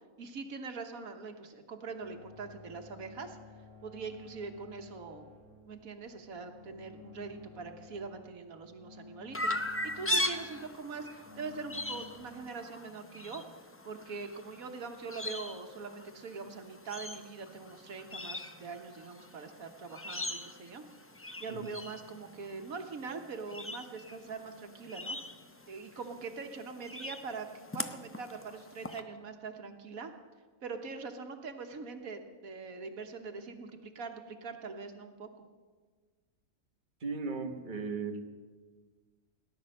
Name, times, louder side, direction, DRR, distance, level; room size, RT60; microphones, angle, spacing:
voice 1, 0.2-3.4 3.8-5.3 5.7-13.4 13.8-20.8 21.4-25.2 25.7-27.5 27.7-30.1 30.6-35.4, right 4 dB, 85° right, 6 dB, 1.6 m, -43 dB
sound 1, 2.0-12.1, left 5 dB, 45° left, 5.6 m, -54 dB
Chirp tweet, 9.3-29.0, left 1 dB, 20° left, 0.3 m, -40 dB
voice 2, 37.0-38.2, right 4 dB, 35° right, 4 dB, 1.4 m, -36 dB
18.0 x 10.5 x 6.5 m, 1.5 s
omnidirectional pair, 1.4 m